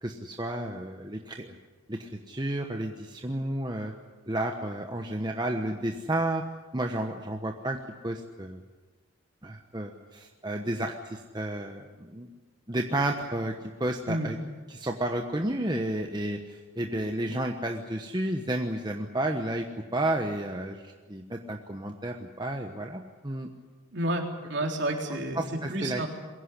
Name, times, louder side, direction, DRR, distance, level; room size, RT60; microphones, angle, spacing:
voice 1, 0.0-1.5 1.9-3.9 4.3-6.4 6.7-7.8 8.0-8.6 9.4-12.3 12.7-13.5 13.8-14.4 14.7-19.7 19.9-23.5 25.3-26.1, right 1 dB, 20° right, 3 dB, 1.1 m, -31 dB
voice 2, 23.9-24.2 24.5-25.4 25.7-26.1, right 1 dB, 55° right, 1 dB, 3.7 m, -29 dB
22.5 x 16.5 x 10.0 m, 1.3 s
head